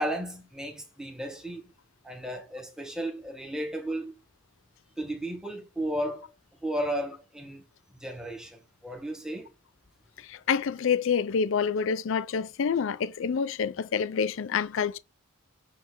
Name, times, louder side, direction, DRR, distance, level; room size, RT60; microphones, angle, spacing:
voice 1, 0.0-1.7 2.0-4.1 5.0-6.3 6.6-7.6 7.9-9.5, right 1 dB, 5° right, 1.2 m, -34 dB
voice 2, 10.3-15.0, left 6 dB, 60° left, 0.4 m, -27 dB
7.8 x 3.3 x 3.7 m
head